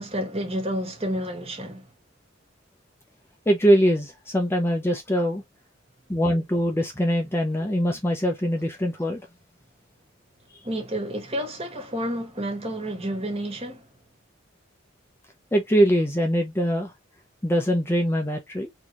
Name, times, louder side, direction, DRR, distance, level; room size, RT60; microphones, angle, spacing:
voice 1, 0.0-1.9 10.6-13.9, equal, 30° right, 1.7 m, -30 dB
voice 2, 3.5-5.4 6.1-9.2 15.5-16.9 17.4-18.7, equal, 15° left, 0.7 m, -22 dB
4.0 x 3.3 x 3.0 m
head